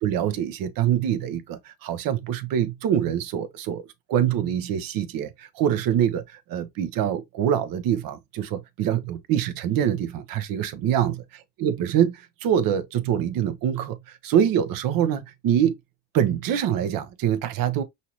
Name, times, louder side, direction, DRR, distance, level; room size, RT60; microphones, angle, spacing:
voice 1, 0.0-3.8 4.1-11.2 11.6-15.7 16.1-17.8, right 9 dB, 75° right, 1.0 m, -24 dB
5.5 x 2.7 x 3.0 m
cardioid pair, 105°, 34 cm